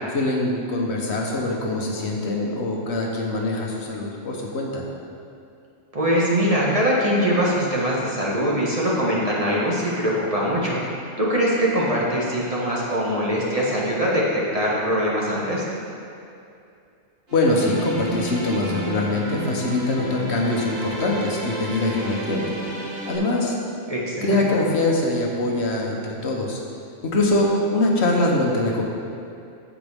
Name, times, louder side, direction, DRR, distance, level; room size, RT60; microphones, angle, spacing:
voice 1, 0.1-4.8 17.3-22.8 23.1-23.6 24.2-26.6 27.0-28.8, left 2 dB, 60° left, -1 dB, 1.4 m, -23 dB
voice 2, 5.9-10.8 11.2-15.6 23.9-24.4, equal, 30° right, -6 dB, 1.4 m, -22 dB
sound 1, 17.3-23.2, equal, 50° right, 1.8 m, -31 dB
15.0 x 5.0 x 3.6 m, 2.6 s
omnidirectional pair, 1.3 m